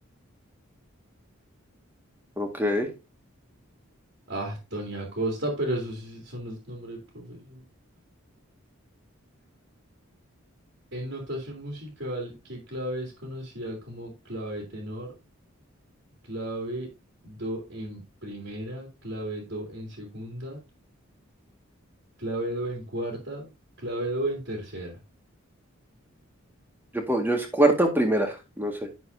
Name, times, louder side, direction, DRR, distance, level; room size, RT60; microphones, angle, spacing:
voice 1, 2.4-2.9 26.9-28.7, right 1 dB, 10° right, 3 dB, 1.8 m, -24 dB
voice 2, 4.3-7.6 10.9-15.1 16.2-16.9 17.2-20.6 22.2-23.5 23.8-25.0, right 1 dB, 60° right, -1 dB, 2.9 m, -34 dB
10.5 x 7.0 x 2.7 m, 0.27 s
head